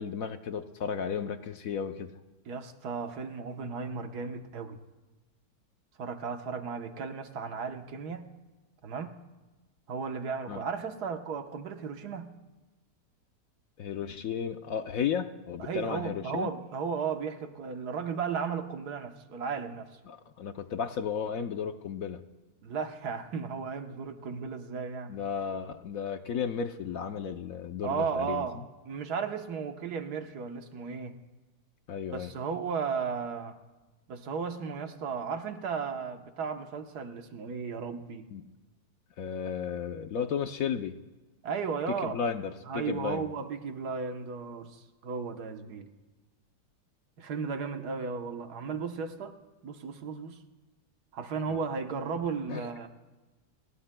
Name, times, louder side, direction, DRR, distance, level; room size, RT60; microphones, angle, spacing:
voice 1, 0.0-2.1 10.5-10.6 13.8-16.5 20.1-22.2 25.1-28.5 31.9-32.3 38.3-38.5 39.2-41.0 41.9-43.3 51.5-51.6 52.5-52.7, left 7 dB, 65° left, 8 dB, 1.0 m, -34 dB
voice 2, 2.5-4.8 6.0-8.2 8.8-9.2 9.9-12.3 15.6-19.9 22.6-25.2 27.8-28.6 28.8-31.2 32.1-33.6 34.1-38.3 41.4-42.2 42.7-45.9 47.2-49.4 49.6-50.4 51.1-52.9, right 5 dB, 70° right, 6 dB, 1.5 m, -35 dB
29.5 x 19.5 x 2.2 m, 1.2 s
omnidirectional pair, 1.8 m